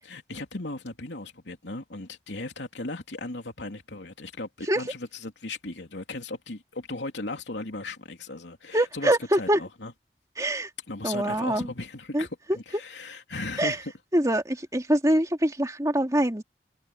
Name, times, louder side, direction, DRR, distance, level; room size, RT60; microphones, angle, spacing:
voice 1, 0.0-9.9 10.9-13.9, left 2 dB, 85° left, 3.0 m, -37 dB
voice 2, 8.7-9.6 10.4-10.7 11.0-11.7 12.1-12.2 13.6-13.8 14.1-16.4, right 1 dB, 20° right, 2.6 m, -24 dB
head